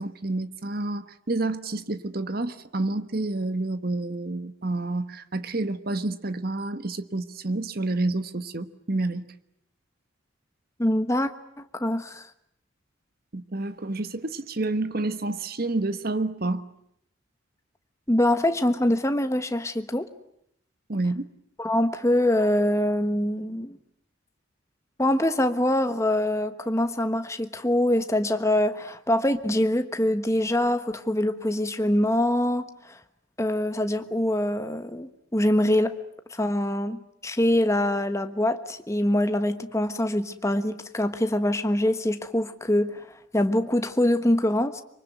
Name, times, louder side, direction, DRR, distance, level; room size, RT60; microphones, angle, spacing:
voice 1, 0.0-9.3 13.3-16.7 20.9-21.3, right 2 dB, 45° right, 12 dB, 1.2 m, -29 dB
voice 2, 10.8-11.3 11.6-12.3 18.1-20.1 21.6-23.8 25.0-33.0 33.4-36.0 36.3-43.1 43.3-44.8, left 1 dB, 15° left, 9 dB, 1.3 m, -24 dB
25.0 x 24.0 x 9.2 m, 0.73 s
head